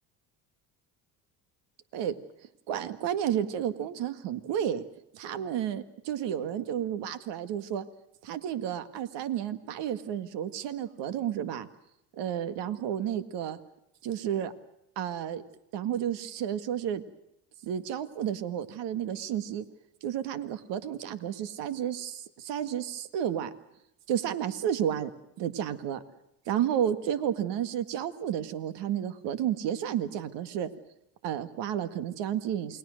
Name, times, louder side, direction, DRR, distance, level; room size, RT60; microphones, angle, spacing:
voice 1, 2.7-4.8 5.1-7.9 8.3-11.7 12.2-13.6 14.0-14.5 15.0-15.4 15.7-17.0 17.6-19.7 20.0-23.5 24.1-25.1 25.4-26.0 26.5-30.7 31.2-32.8, right 9 dB, 70° right, 11 dB, 2.0 m, -31 dB
28.5 x 20.5 x 6.5 m, 0.82 s
supercardioid pair, 75°, 43 cm